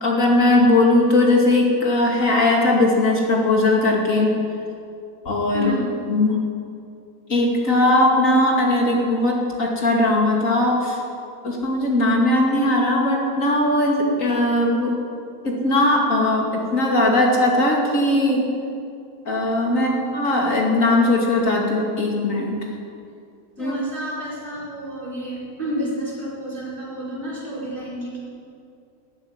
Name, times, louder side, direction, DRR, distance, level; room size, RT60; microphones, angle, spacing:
voice 1, 0.0-4.3 5.2-5.7 6.1-6.3 7.3-11.0 11.4-15.0 15.4-18.4 19.3-22.6 23.6-23.7, left 2 dB, 60° left, -1 dB, 2.9 m, -19 dB
voice 2, 5.5-5.9 19.7-20.0 23.6-28.2, right 1 dB, 35° right, -6 dB, 5.5 m, -30 dB
14.0 x 9.5 x 9.7 m, 2.4 s
omnidirectional pair, 1.5 m